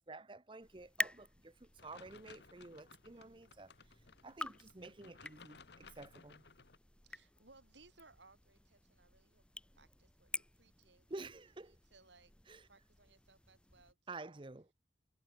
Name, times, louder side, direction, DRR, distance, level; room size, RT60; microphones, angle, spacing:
voice 1, 0.0-3.7 4.2-6.4 11.1-11.7 12.5-12.7 14.1-14.7, right 2 dB, 25° right, 0.7 m, -51 dB
sound 1, 0.6-13.9, left 1 dB, 5° left, 1.2 m, -49 dB
sound 2, 1.8-6.8, left 4 dB, 70° left, 1.2 m, -60 dB
voice 2, 3.1-3.5 7.0-11.1 11.7-12.3 12.6-14.4, right 3 dB, 80° right, 6.7 m, -66 dB
head